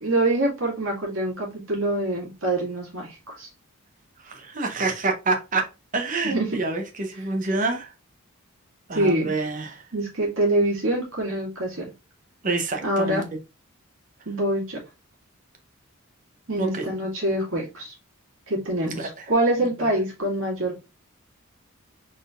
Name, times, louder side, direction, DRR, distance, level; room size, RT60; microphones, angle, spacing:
voice 1, 0.0-3.5 6.2-6.5 8.9-9.3 9.9-11.8 12.8-13.2 14.3-14.8 16.5-17.9 18.5-20.8, right 1 dB, 70° right, 2.0 m, -25 dB
voice 2, 4.2-5.6 5.9-7.9 8.9-9.8 12.4-13.3 16.6-16.8 18.9-19.2 19.8-19.9, right 3 dB, 40° right, 0.8 m, -27 dB
4.1 x 3.7 x 2.5 m
head